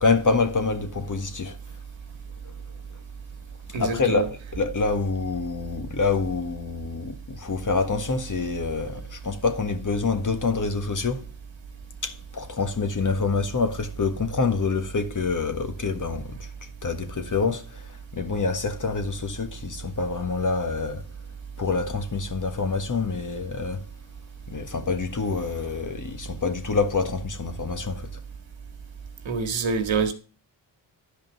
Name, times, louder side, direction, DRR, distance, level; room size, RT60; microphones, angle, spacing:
voice 1, 0.0-1.6 2.4-2.5 3.7-11.2 12.0-21.1 21.6-23.9 24.5-28.1, left 4 dB, 40° left, 1.6 m, -27 dB
voice 2, 3.7-4.3 29.3-30.1, right 5 dB, 70° right, 1.9 m, -26 dB
11.0 x 5.3 x 6.8 m
cardioid pair, 60°, 48 cm